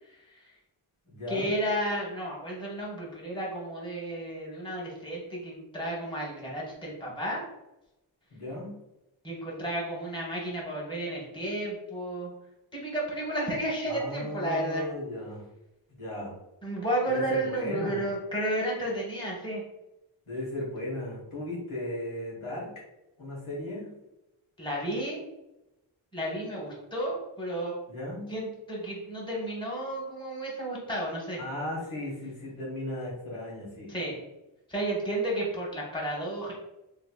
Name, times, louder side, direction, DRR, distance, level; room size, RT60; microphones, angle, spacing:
voice 1, 0.1-0.5 1.3-7.4 9.2-12.3 12.7-14.8 16.6-19.6 24.6-25.2 26.1-27.7 28.3-31.4 33.9-34.2 34.7-36.5, right 1 dB, 10° left, -3 dB, 1.1 m, -32 dB
voice 2, 1.0-1.5 8.3-8.8 13.9-15.5 15.9-16.4 17.1-18.0 20.3-22.7 23.2-24.0 27.9-28.3 31.4-33.9, left 1 dB, 85° left, -6 dB, 1.3 m, -36 dB
2.9 x 2.9 x 2.3 m, 0.93 s
wide cardioid pair, 50°, 49 cm